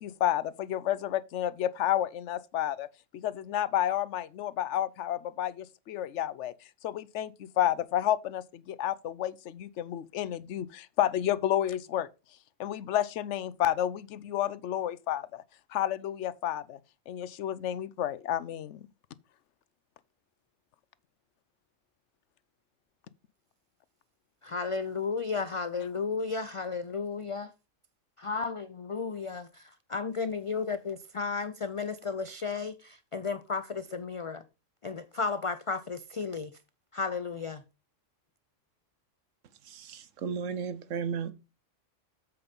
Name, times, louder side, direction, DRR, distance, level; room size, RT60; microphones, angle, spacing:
voice 1, 0.0-2.9 3.1-6.5 6.8-12.1 12.6-15.4 15.7-16.8 17.1-18.8, left 11 dB, 75° left, 0.9 m, -30 dB
voice 2, 24.4-27.5 28.2-29.5 29.9-34.4 34.8-36.5 36.9-37.6, left 4 dB, 55° left, 0.3 m, -33 dB
voice 3, 39.7-41.3, right 6 dB, 85° right, 1.2 m, -34 dB
7.8 x 5.3 x 5.4 m
omnidirectional pair, 1.3 m